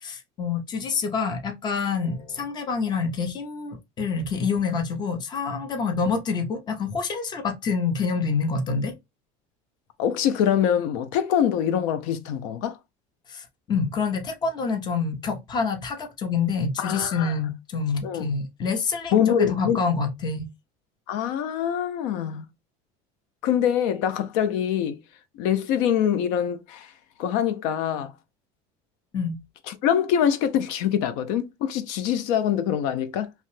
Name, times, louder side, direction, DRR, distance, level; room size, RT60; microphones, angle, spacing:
voice 1, 0.0-8.9 13.3-20.5 29.1-29.4, left 5 dB, 25° left, 0.6 m, -27 dB
voice 2, 10.0-12.8 16.8-17.3 18.0-18.3 19.1-19.8 21.1-22.4 23.4-25.0 25.4-26.9 27.2-28.1 29.7-33.3, left 9 dB, 80° left, 0.4 m, -24 dB
2.8 x 2.1 x 3.0 m
cardioid pair, 155°, 16 cm